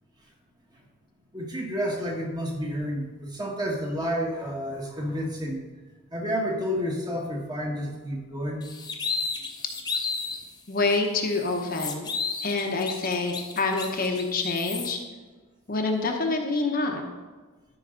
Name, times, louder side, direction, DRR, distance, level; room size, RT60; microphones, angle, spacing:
voice 1, 1.3-5.6 6.1-8.7, equal, 20° right, 0 dB, 1.2 m, -30 dB
sound 1, 8.6-10.4 10.9-11.0 11.4-14.9, left 4 dB, 20° left, 0.7 m, -33 dB
voice 2, 10.7-12.1 12.4-15.0 15.7-17.0, left 3 dB, 45° left, 2 dB, 0.9 m, -26 dB
12.5 x 5.4 x 3.8 m, 1.3 s
head